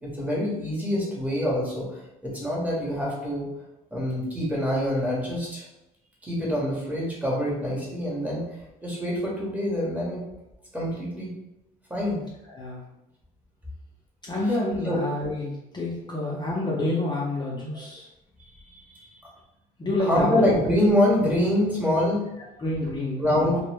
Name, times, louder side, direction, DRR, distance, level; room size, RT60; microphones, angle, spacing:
voice 1, 0.0-3.5 3.9-5.7 6.2-10.2 10.7-11.3 11.9-12.2 14.5-14.6 14.8-15.0 18.6-19.1 20.0-22.2 23.2-23.6, left 1 dB, 10° right, -4 dB, 0.9 m, -25 dB
voice 2, 12.5-12.8 14.2-18.1 19.8-20.5 22.6-23.6, left 2 dB, 25° left, -5 dB, 0.5 m, -28 dB
2.1 x 2.0 x 3.2 m, 0.89 s
cardioid pair, 110°, 17 cm